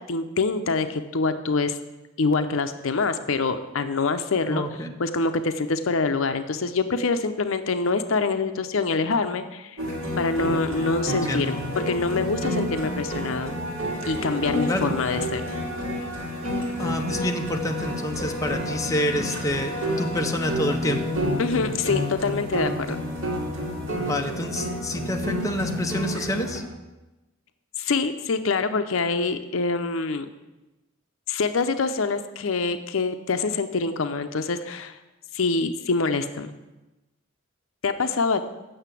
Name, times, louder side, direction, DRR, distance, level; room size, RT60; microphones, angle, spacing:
voice 1, 0.0-1.8 2.2-4.6 5.0-9.8 10.2-13.5 14.1-15.4 21.4-23.0 27.8-30.3 31.3-35.0 35.3-36.5 37.8-38.5, left 4 dB, 70° left, 9 dB, 0.6 m, -25 dB
voice 2, 4.5-4.9 11.1-11.6 14.7-14.9 16.8-21.0 24.0-26.6, left 1 dB, 15° left, 3 dB, 0.8 m, -28 dB
sound 1, 9.8-26.6, equal, 65° right, 2.6 m, -29 dB
7.9 x 6.6 x 8.2 m, 1.0 s
head